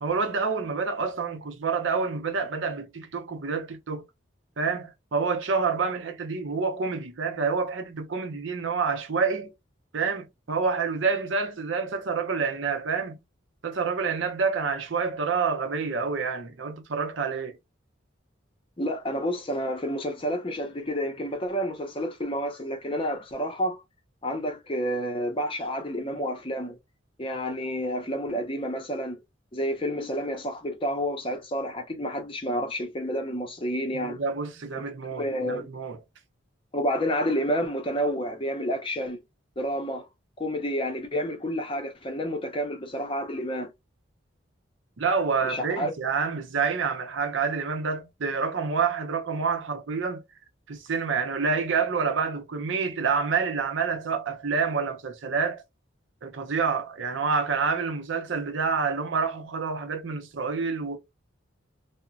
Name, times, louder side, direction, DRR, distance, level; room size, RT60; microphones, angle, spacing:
voice 1, 0.0-4.1 4.6-9.5 9.9-13.2 13.6-17.6 33.9-36.0 45.0-50.2 50.7-55.6 56.2-61.0, right 5 dB, 70° right, 0.6 m, -28 dB
voice 2, 18.8-23.8 24.2-26.8 27.2-29.2 29.5-34.2 34.7-34.8 35.2-35.7 36.7-39.2 39.6-40.1 40.4-43.7 45.4-45.9, equal, 25° left, 0.6 m, -29 dB
2.9 x 2.1 x 2.4 m
head